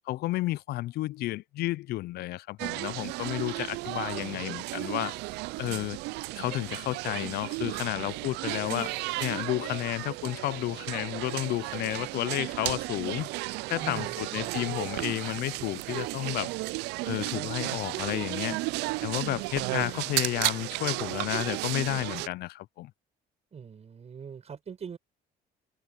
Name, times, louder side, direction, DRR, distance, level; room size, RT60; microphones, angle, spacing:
voice 1, 0.1-5.2 5.6-6.0 6.4-8.9 9.2-13.3 13.7-16.5 17.1-18.6 19.0-22.9, left 16 dB, 70° left, 0.4 m, -32 dB
sound 1, 2.6-22.3, right 22 dB, 90° right, 0.4 m, -34 dB
voice 2, 13.7-14.5 23.5-25.0, right 6 dB, 40° right, 6.7 m, -42 dB
cardioid pair, 110°, 17 cm